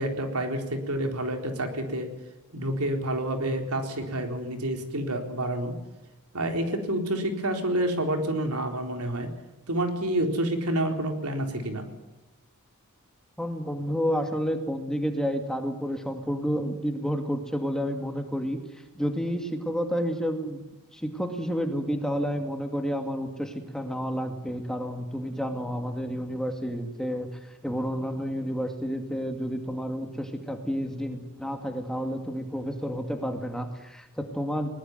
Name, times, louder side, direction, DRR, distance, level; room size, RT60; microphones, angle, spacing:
voice 1, 0.0-2.1 2.5-5.8 6.3-9.3 9.7-11.9, right 1 dB, 90° right, 5 dB, 4.0 m, -28 dB
voice 2, 13.4-18.6 19.0-20.6 20.9-27.3 27.6-34.7, equal, 5° left, 5 dB, 2.4 m, -30 dB
21.0 x 19.5 x 9.6 m, 0.99 s
head